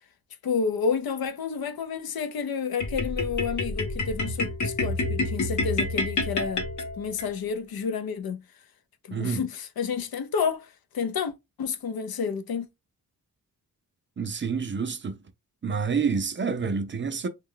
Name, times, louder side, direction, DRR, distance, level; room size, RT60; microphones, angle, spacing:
voice 1, 0.4-6.7 7.0-8.4 9.0-12.7, left 6 dB, 85° left, 0.6 m, -30 dB
sound 1, 2.8-7.3, left 2 dB, 55° left, 0.9 m, -28 dB
voice 2, 9.1-9.4 14.2-15.2 15.6-17.3, right 5 dB, 35° right, 0.4 m, -28 dB
3.1 x 2.2 x 3.7 m
wide cardioid pair, 165°, 36 cm